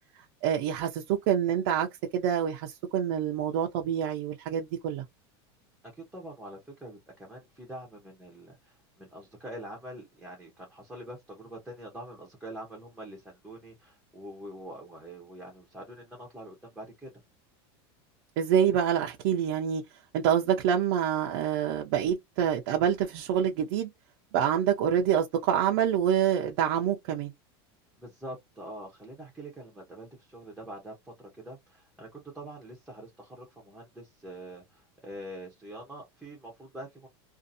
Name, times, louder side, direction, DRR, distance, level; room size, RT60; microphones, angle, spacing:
voice 1, 0.4-1.9 2.1-5.0 18.4-19.8 20.1-23.9 24.3-27.3, right 9 dB, 50° right, 0.6 m, -26 dB
voice 2, 5.8-17.1 28.0-37.1, right 1 dB, ahead, 0.7 m, -45 dB
2.6 x 2.5 x 2.6 m
supercardioid pair, 175°, 14 cm